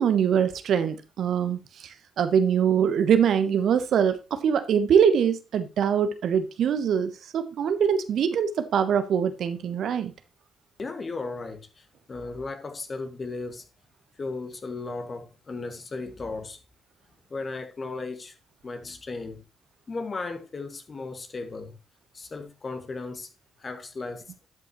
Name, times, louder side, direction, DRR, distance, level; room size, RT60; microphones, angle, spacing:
voice 1, 0.0-10.1, right 7 dB, 65° right, 1.1 m, -23 dB
voice 2, 10.8-13.7 14.2-16.6 17.3-18.4 18.6-19.4 19.9-21.8 22.1-23.3 23.6-24.3, left 3 dB, 40° left, 1.9 m, -36 dB
12.0 x 8.3 x 3.1 m
hypercardioid pair, 40°, 0 cm